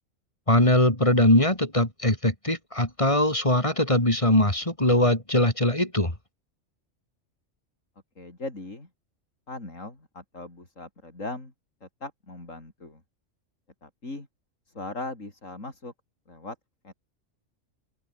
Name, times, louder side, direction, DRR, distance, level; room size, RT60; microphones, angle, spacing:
voice 1, 0.5-6.1, left 1 dB, 25° left, 4.1 m, -21 dB
voice 2, 8.2-8.9 9.5-11.5 11.8-13.0 13.8-14.3 14.7-15.9 16.3-16.6 16.8-16.9, left 2 dB, 90° left, 5.5 m, -39 dB
open air
omnidirectional pair, 1.3 m